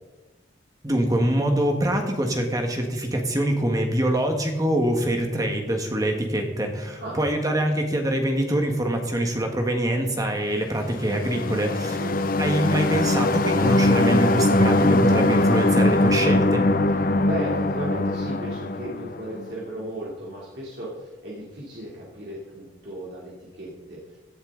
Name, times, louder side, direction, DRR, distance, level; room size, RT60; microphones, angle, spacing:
voice 1, 0.8-12.0 12.4-16.7, right 1 dB, 20° right, 3 dB, 1.5 m, -24 dB
sound 1, 10.8-19.5, left 2 dB, 45° left, 0.6 m, -22 dB
voice 2, 11.9-12.4 17.2-24.2, right 1 dB, 60° right, -6 dB, 3.0 m, -35 dB
16.5 x 11.5 x 3.8 m, 1.1 s
head